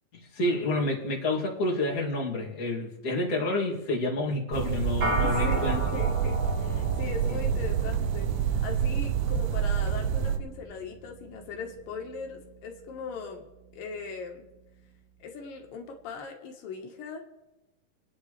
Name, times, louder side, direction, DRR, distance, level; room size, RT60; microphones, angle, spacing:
voice 1, 0.3-5.8 7.3-7.4, left 2 dB, 25° left, -4 dB, 2.7 m, -29 dB
sound 1, 4.5-10.4, right 8 dB, 75° right, 2.0 m, -27 dB
sound 2, 5.0-14.5, equal, 40° right, 1.5 m, -38 dB
voice 2, 5.1-13.5 13.7-14.4 15.2-17.2, left 5 dB, 80° left, 2 dB, 3.1 m, -39 dB
30.0 x 10.0 x 3.3 m, 1.0 s
omnidirectional pair, 3.9 m